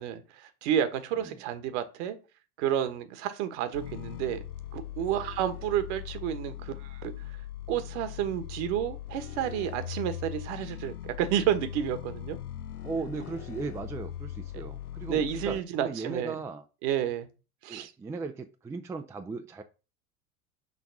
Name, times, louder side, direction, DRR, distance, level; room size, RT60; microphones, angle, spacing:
voice 1, 0.0-2.2 2.6-4.4 4.7-7.1 7.7-12.4 14.5-14.6 15.1-16.3 16.8-17.3 17.6-17.9, right 10 dB, 50° right, 1.3 m, -30 dB
sound 1, 3.7-15.6, left 11 dB, 90° left, 0.6 m, -40 dB
voice 2, 12.8-16.6 17.7-19.6, right 4 dB, 5° right, 0.4 m, -37 dB
6.0 x 3.5 x 5.9 m
figure-of-eight pair, 80°, 44 cm